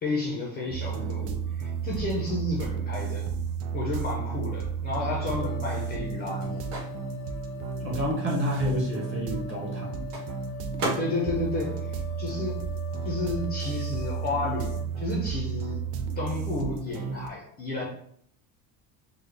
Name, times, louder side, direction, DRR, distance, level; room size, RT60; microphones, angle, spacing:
voice 1, 0.0-3.3 3.7-6.6 11.0-12.6 13.0-15.8 16.2-17.9, left 2 dB, 25° left, -3 dB, 0.4 m, -32 dB
sound 1, 0.7-17.3, right 7 dB, 60° right, 0.5 m, -33 dB
Microwave oven, 4.9-13.0 13.2-15.2, right 1 dB, 80° right, 1.3 m, -40 dB
sound 2, 5.1-14.9, left 8 dB, 80° left, 0.8 m, -42 dB
voice 2, 7.8-10.1, equal, 30° right, -2 dB, 0.9 m, -29 dB
3.7 x 2.1 x 3.2 m, 0.65 s
cardioid pair, 155°, 44 cm